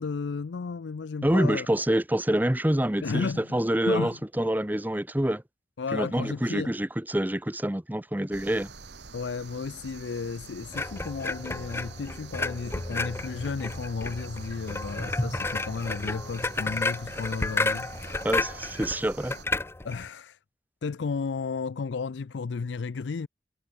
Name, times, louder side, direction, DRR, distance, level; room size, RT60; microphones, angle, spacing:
voice 1, 0.0-1.7 3.0-4.2 5.8-6.7 9.1-17.9 19.8-20.4 20.8-23.3, left 5 dB, 85° left, 0.5 m, -33 dB
voice 2, 1.2-5.4 5.9-8.7 18.2-19.4, right 1 dB, 10° right, 0.9 m, -26 dB
sound 1, 8.3-19.4, right 4 dB, 75° right, 2.3 m, -46 dB
sound 2, 10.7-20.1, left 2 dB, 15° left, 0.5 m, -32 dB
head